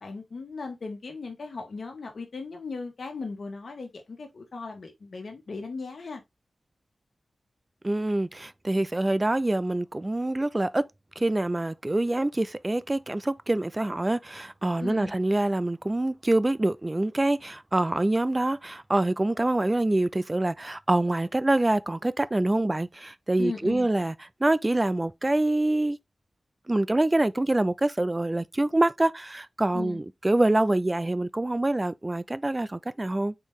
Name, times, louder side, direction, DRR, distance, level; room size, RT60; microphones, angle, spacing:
voice 1, 0.0-6.2 14.8-15.1 23.4-23.9 29.7-30.0, left 4 dB, 70° left, 1.4 m, -37 dB
voice 2, 7.8-10.8 11.2-24.1 24.4-26.0 26.7-33.3, right 2 dB, 20° right, 0.3 m, -25 dB
4.5 x 3.0 x 3.5 m
wide cardioid pair, 105°, 0 cm